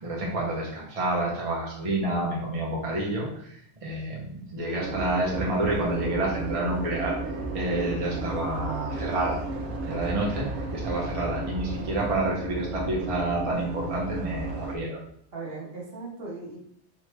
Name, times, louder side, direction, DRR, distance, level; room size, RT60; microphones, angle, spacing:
voice 1, 0.0-7.2 7.5-9.4 9.9-15.0, right 2 dB, 35° right, -3 dB, 0.9 m, -29 dB
sound 1, 4.8-14.8, right 2 dB, 85° right, 1.0 m, -33 dB
voice 2, 15.3-16.6, right 3 dB, 60° right, -3 dB, 1.2 m, -39 dB
3.5 x 3.2 x 3.2 m, 0.66 s
omnidirectional pair, 1.2 m